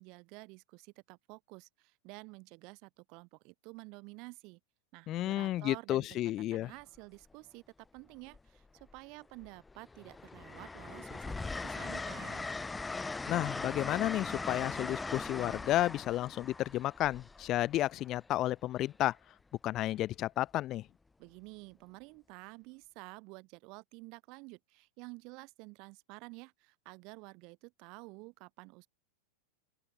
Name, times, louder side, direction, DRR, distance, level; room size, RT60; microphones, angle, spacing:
voice 1, 0.0-4.6 4.9-6.2 6.5-7.6 7.9-12.5 21.2-28.9, right 28 dB, 45° right, 6.8 m, -51 dB
voice 2, 5.1-6.7 13.3-19.2 19.6-20.8, left 14 dB, 35° left, 0.6 m, -32 dB
Train, 6.8-7.0 8.3-9.0 9.4-18.2 19.8-20.0, left 3 dB, 10° left, 2.3 m, -40 dB
open air
figure-of-eight pair, 90°, 0 cm